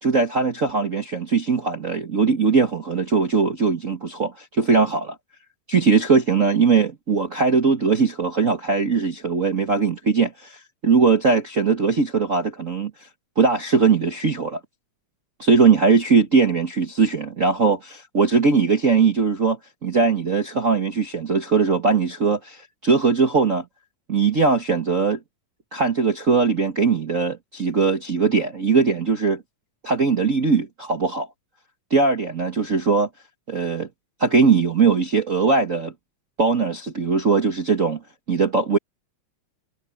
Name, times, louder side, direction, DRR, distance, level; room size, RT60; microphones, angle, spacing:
voice 1, 0.0-5.1 5.7-12.9 13.4-14.6 15.4-23.6 24.1-25.2 25.7-29.4 29.8-31.3 31.9-33.1 33.5-33.9 34.2-35.9 36.4-38.0 38.3-38.8, right 4 dB, 55° right, 0.8 m, -20 dB
omnidirectional pair, 3.7 m